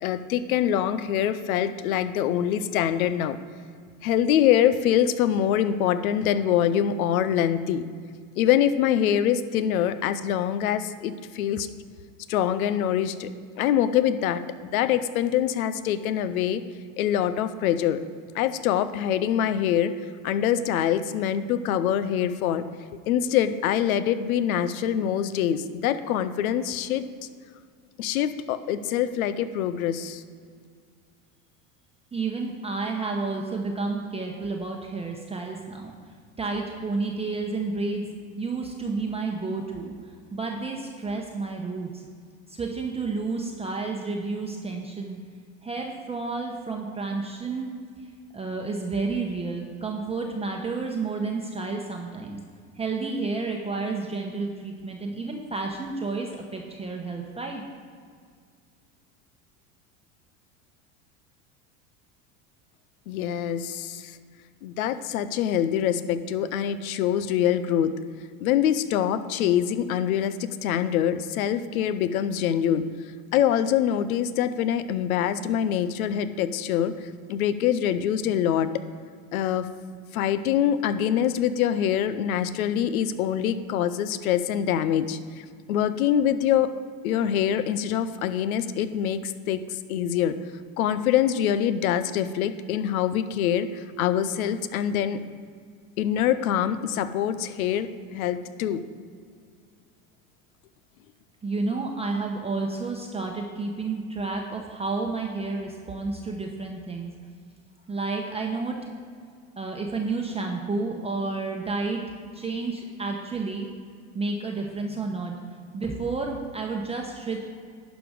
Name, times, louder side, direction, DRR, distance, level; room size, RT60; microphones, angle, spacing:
voice 1, 0.0-3.4 4.0-7.8 8.4-11.7 12.3-13.3 13.6-14.4 14.7-16.6 17.0-18.0 18.3-19.9 20.2-22.6 23.1-27.1 28.0-30.2 63.1-64.2 64.6-67.9 68.4-72.9 73.3-76.9 77.3-78.7 79.3-79.7 80.1-85.2 85.7-86.7 87.0-90.4 90.8-95.2 96.0-98.8, left 10 dB, 85° left, 13 dB, 0.6 m, -24 dB
voice 2, 32.1-35.9 36.4-38.1 38.4-39.9 40.3-42.0 42.5-45.2 45.6-47.7 48.3-52.4 52.7-57.6 101.4-107.1 107.9-108.8 109.6-112.0 112.3-113.7 114.1-115.3 115.7-117.6, right 3 dB, 15° right, 0 dB, 0.8 m, -30 dB
11.0 x 5.1 x 5.0 m, 2.1 s
hypercardioid pair, 95°, 41 cm